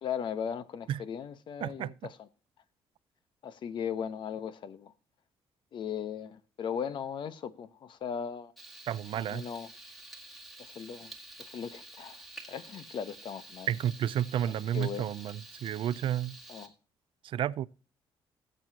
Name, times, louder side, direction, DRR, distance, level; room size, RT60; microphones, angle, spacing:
voice 1, 0.0-2.3 3.4-4.9 5.7-8.5 9.1-9.7 10.6-11.1 11.4-12.2 12.5-13.7 14.5-15.1 16.5-16.7, left 8 dB, 55° left, 1.0 m, -38 dB
voice 2, 1.6-1.9 8.9-9.4 13.7-16.3 17.2-17.7, right 10 dB, 60° right, 0.5 m, -31 dB
Frying (food), 8.6-16.7, right 2 dB, ahead, 1.8 m, -49 dB
19.0 x 7.8 x 2.9 m
cardioid pair, 140°, 10 cm